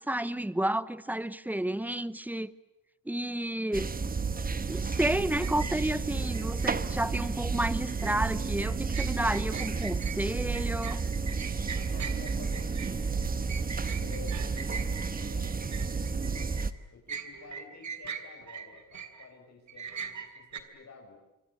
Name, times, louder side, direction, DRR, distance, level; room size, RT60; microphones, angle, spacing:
voice 1, 0.0-2.5 3.1-3.9 4.7-11.0, right 1 dB, 5° right, 0.9 m, -31 dB
sound 1, 3.7-16.7, right 4 dB, 25° right, 1.2 m, -31 dB
sound 2, 5.4-6.7 7.8-8.2 8.6-16.7 17.1-19.3 19.7-20.6, right 6 dB, 60° right, 3.0 m, -41 dB
voice 2, 11.7-13.5 14.0-16.5 16.9-21.2, left 5 dB, 55° left, 5.7 m, -51 dB
26.5 x 25.5 x 8.3 m
wide cardioid pair, 135°, 33 cm